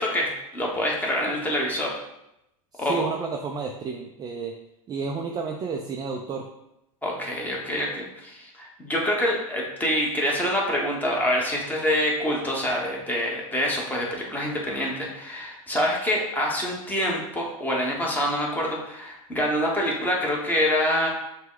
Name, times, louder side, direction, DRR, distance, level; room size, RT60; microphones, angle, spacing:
voice 1, 0.0-1.9 2.8-3.1 7.0-21.1, equal, 10° left, -2 dB, 1.1 m, -26 dB
voice 2, 2.7-4.5 4.9-6.5, right 5 dB, 20° right, 2 dB, 0.3 m, -31 dB
5.8 x 2.2 x 3.8 m, 0.85 s
hypercardioid pair, 110°, 19 cm